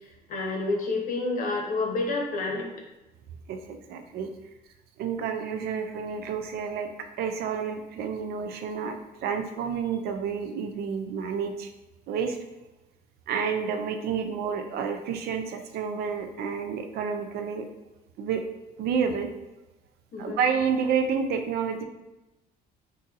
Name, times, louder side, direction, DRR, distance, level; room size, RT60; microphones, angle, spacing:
voice 1, 0.3-2.7 20.1-20.4, left 3 dB, 55° left, 1 dB, 0.8 m, -29 dB
voice 2, 3.5-4.3 5.0-6.9 7.2-11.7 12.1-12.4 13.3-17.7 18.2-18.4 18.8-19.3 20.2-21.8, right 6 dB, 70° right, 6 dB, 0.4 m, -29 dB
2.7 x 2.5 x 3.8 m, 1.0 s
cardioid pair, 110°, 17 cm